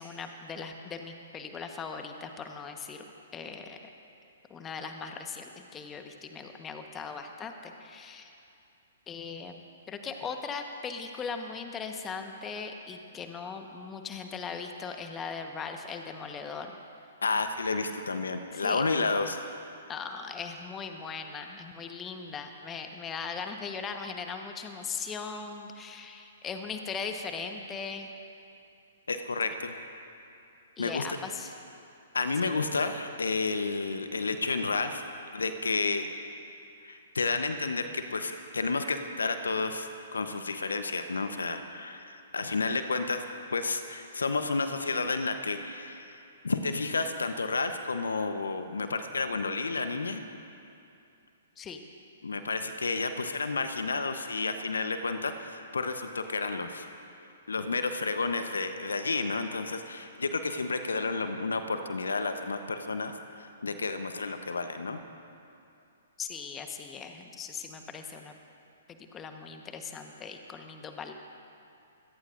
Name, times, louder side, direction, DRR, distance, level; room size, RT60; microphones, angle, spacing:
voice 1, 0.0-3.0 3.3-3.8 4.5-8.3 9.1-9.6 9.9-16.8 18.5-18.8 19.9-28.1 30.8-31.5 51.6-51.8 66.2-68.4 68.9-71.1, left 5 dB, 20° left, 5 dB, 1.2 m, -39 dB
voice 2, 17.2-19.4 29.1-29.7 30.8-31.1 32.1-35.0 35.3-36.1 36.8-43.2 43.5-46.2 46.4-50.2 52.2-56.9 57.5-65.0, left 3 dB, 75° left, 8 dB, 0.9 m, -31 dB
26.0 x 17.5 x 2.6 m, 2.6 s
figure-of-eight pair, 120°, 0 cm